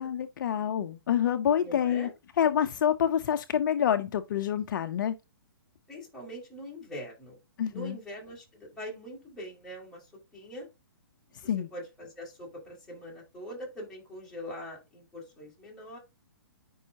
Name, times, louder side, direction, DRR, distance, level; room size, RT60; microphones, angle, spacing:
voice 1, 0.0-2.1 2.4-5.1 7.6-8.0 11.4-11.7, left 9 dB, 55° left, 0.7 m, -27 dB
voice 2, 1.6-2.1 5.9-7.4 7.7-10.0 10.3-10.7 11.4-16.0, equal, 5° left, 4.9 m, -43 dB
9.7 x 5.5 x 2.9 m
hypercardioid pair, 150°, 12 cm